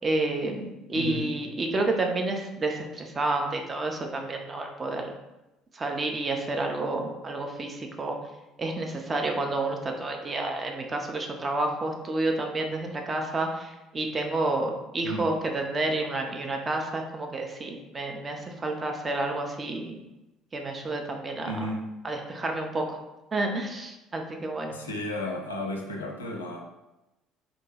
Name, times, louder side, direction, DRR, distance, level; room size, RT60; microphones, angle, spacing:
voice 1, 0.0-5.1 5.7-8.2 8.6-20.0 20.5-21.5 22.0-23.0 23.3-24.8, right 2 dB, 25° right, 2 dB, 0.5 m, -30 dB
voice 2, 0.9-1.3 15.0-15.3 21.4-21.9 24.7-26.6, left 1 dB, 80° left, 1 dB, 0.4 m, -33 dB
2.6 x 2.2 x 3.2 m, 0.98 s
figure-of-eight pair, 55°, 0 cm